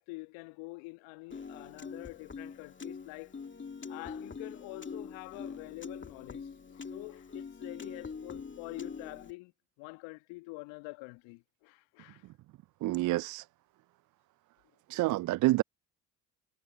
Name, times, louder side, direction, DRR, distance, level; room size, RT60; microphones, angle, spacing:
voice 1, 0.0-3.4 3.9-9.5 9.8-12.3 14.9-15.0, left 26 dB, 70° left, 1.7 m, -46 dB
Piano, 1.3-9.3, left 5 dB, 25° left, 2.4 m, -44 dB
voice 2, 12.8-13.4 14.9-15.6, right 17 dB, 40° right, 0.5 m, -28 dB
hypercardioid pair, 55°, 47 cm